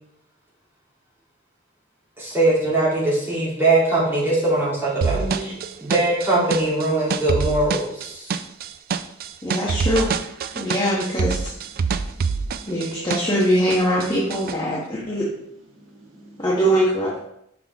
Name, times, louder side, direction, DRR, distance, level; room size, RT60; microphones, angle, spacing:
voice 1, 2.2-5.5 5.8-8.3, right 2 dB, 10° right, -8 dB, 2.8 m, -21 dB
sound 1, 5.0-13.4 13.7-14.5, right 5 dB, 45° right, 0.3 m, -26 dB
voice 2, 5.1-5.5 9.4-10.1 10.5-11.4 12.7-15.3 16.4-17.2, equal, 20° left, -6 dB, 1.1 m, -22 dB
voice 3, 11.7-12.7 15.7-16.4, right 1 dB, 75° right, -3 dB, 1.9 m, -49 dB
6.2 x 5.7 x 3.5 m, 0.76 s
head